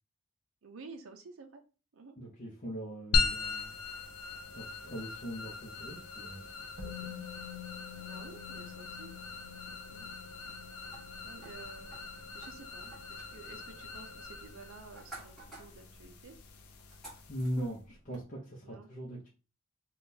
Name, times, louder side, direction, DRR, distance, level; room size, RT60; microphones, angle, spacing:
voice 1, 0.6-1.6 1.9-2.2 8.0-9.1 9.9-10.1 11.2-12.0 12.3-16.4 18.6-18.9, right 4 dB, 65° right, 4 dB, 0.5 m, -51 dB
voice 2, 2.2-3.8 4.5-6.5 6.8-7.3 17.3-19.3, equal, 40° left, -4 dB, 0.7 m, -40 dB
sound 1, 3.1-17.8, left 3 dB, 80° left, 0.5 m, -39 dB
Musical instrument, 6.8-14.7 15.0-15.1, left 9 dB, 40° right, 1.3 m, -49 dB
sound 2, 10.9-18.2, right 2 dB, ahead, 1.4 m, -55 dB
3.5 x 2.3 x 2.7 m, 0.33 s
head